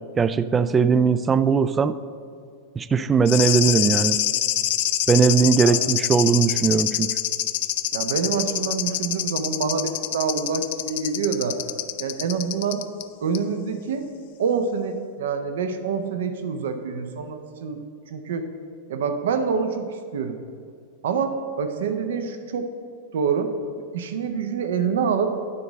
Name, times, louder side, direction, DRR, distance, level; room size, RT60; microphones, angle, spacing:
voice 1, 0.2-2.0 2.8-4.2 5.1-7.2, right 6 dB, 20° right, 13 dB, 0.3 m, -19 dB
sound 1, 3.2-13.0 13.3-13.4, left 13 dB, 50° left, 0.4 m, -25 dB
voice 2, 7.9-11.6 12.0-12.8 13.2-14.1 14.4-17.8 18.1-18.5 18.9-19.8 20.1-20.4 21.0-22.7 23.1-23.5 23.9-25.3, right 6 dB, 60° right, 7 dB, 0.8 m, -26 dB
9.8 x 3.9 x 7.4 m, 2.2 s
figure-of-eight pair, 90°, 0 cm